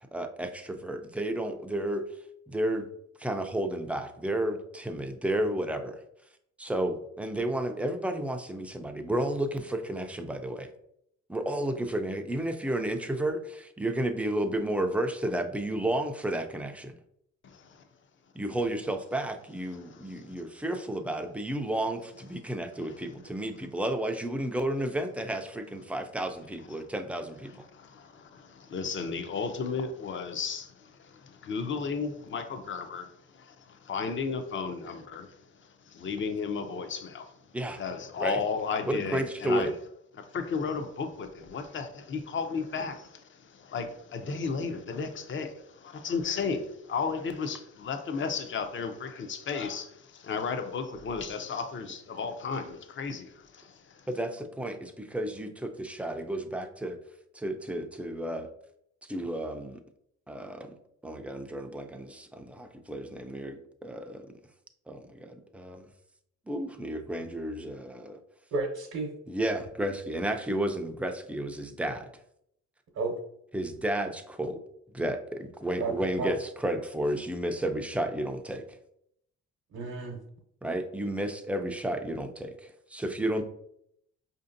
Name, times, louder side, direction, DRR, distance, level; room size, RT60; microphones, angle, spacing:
voice 1, 0.0-2.0 2.5-2.9 3.2-6.0 6.6-10.7 11.3-16.9 18.3-27.6 37.5-37.8 38.2-38.4 38.9-39.7 54.1-57.0 57.3-58.5 59.1-59.8 60.3-60.7 61.0-63.6 63.8-64.3 64.9-65.9 66.5-68.2 69.3-72.1 73.5-74.6 74.9-78.6 80.6-83.4, right 1 dB, 5° right, 5 dB, 0.4 m, -32 dB
voice 2, 17.4-17.8 19.7-20.3 22.8-23.0 26.7-26.8 27.5-37.3 37.8-39.7 40.1-54.1, left 5 dB, 40° left, 7 dB, 0.6 m, -34 dB
voice 3, 68.5-69.1 72.9-73.2 75.8-76.3 79.7-80.2, right 3 dB, 60° right, 1 dB, 0.8 m, -32 dB
4.9 x 2.6 x 2.6 m, 0.73 s
cardioid pair, 90°, 30 cm